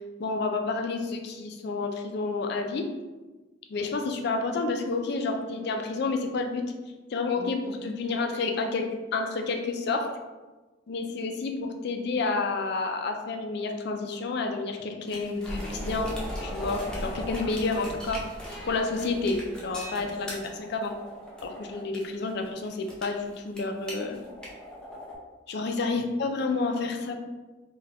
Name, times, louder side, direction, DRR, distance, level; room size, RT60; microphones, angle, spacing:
voice 1, 0.2-2.9 3.7-6.6 7.1-10.1 10.9-16.1 16.4-18.2 18.7-21.0 21.4-24.2 25.5-27.2, left 3 dB, 60° left, 4 dB, 0.4 m, -30 dB
sound 1, 15.1-25.1, equal, 5° left, 0.7 m, -38 dB
3.8 x 2.3 x 2.8 m, 1.2 s
head